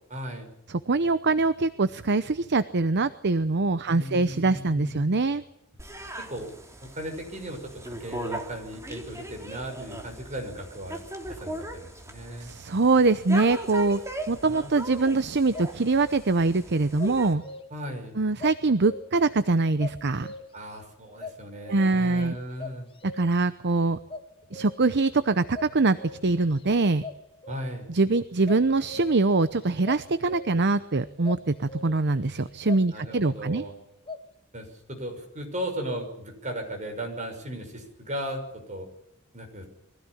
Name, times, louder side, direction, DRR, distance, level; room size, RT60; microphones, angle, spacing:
voice 1, 0.1-0.5 3.9-5.1 6.2-6.5 6.8-11.0 11.3-12.5 17.7-18.2 20.5-22.9 27.5-27.9 32.9-33.7 34.5-38.9 39.3-39.7, equal, 35° right, 4 dB, 6.3 m, -36 dB
voice 2, 0.9-5.4 12.4-14.0 14.3-17.4 18.2-20.3 21.7-22.4 23.2-24.0 24.5-27.0 27.9-33.6, right 3 dB, 55° right, 13 dB, 0.8 m, -23 dB
sound 1, 5.8-17.3, right 1 dB, 15° right, 3.3 m, -39 dB
sound 2, 15.5-16.5 17.0-17.9 18.4-19.3 19.8-20.7 21.2-22.1 22.6-23.5 24.1-25.0 25.5-26.6 27.0-27.9 28.5-29.4 29.8-30.8 31.2-32.2 32.7-33.6 34.1-34.3, left 3 dB, 25° left, 2.0 m, -41 dB
23.0 x 16.5 x 10.0 m, 0.78 s
head